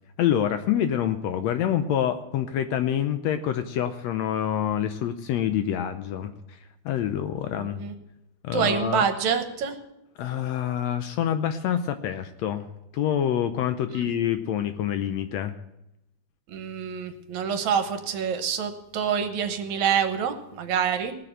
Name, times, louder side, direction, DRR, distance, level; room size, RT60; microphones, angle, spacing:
voice 1, 0.2-6.6 6.8-7.8 8.4-9.0 10.2-12.7 12.9-15.5, left 10 dB, 75° left, 9 dB, 1.7 m, -26 dB
voice 2, 7.5-7.9 8.5-9.8 14.0-14.1 16.5-21.1, right 7 dB, 70° right, 7 dB, 2.4 m, -26 dB
18.0 x 6.7 x 8.8 m, 0.85 s
omnidirectional pair, 3.5 m